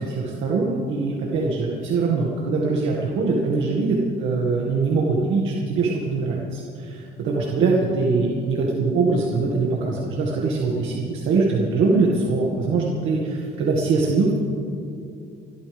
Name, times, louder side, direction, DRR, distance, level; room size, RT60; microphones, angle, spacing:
voice 1, 0.0-14.3, right 3 dB, 70° right, -3 dB, 2.1 m, -22 dB
29.5 x 13.0 x 3.6 m, 2.6 s
cardioid pair, 160°, 21 cm